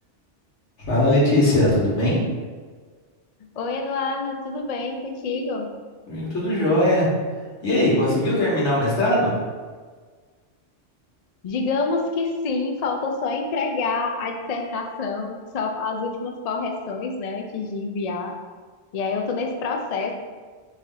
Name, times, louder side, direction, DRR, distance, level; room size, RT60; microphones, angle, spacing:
voice 1, 0.8-2.2 6.1-7.1 7.6-9.3, left 1 dB, 80° left, -6 dB, 1.7 m, -20 dB
voice 2, 3.5-5.7 11.4-18.4 18.9-20.1, left 4 dB, 60° left, 3 dB, 0.4 m, -27 dB
4.0 x 3.3 x 3.8 m, 1.5 s
omnidirectional pair, 1.2 m